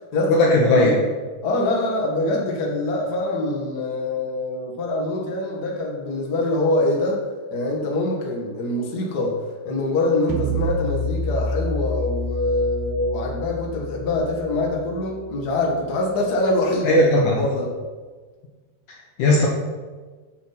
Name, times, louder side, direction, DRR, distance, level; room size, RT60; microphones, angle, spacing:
voice 1, 0.3-1.0 16.8-17.4 18.9-19.5, left 1 dB, 65° left, -2 dB, 2.1 m, -17 dB
voice 2, 1.4-17.7, left 2 dB, 40° left, -2 dB, 1.5 m, -24 dB
sound 1, 10.3-15.6, left 1 dB, 70° right, 2.5 m, -29 dB
9.1 x 7.9 x 5.9 m, 1.4 s
omnidirectional pair, 4.8 m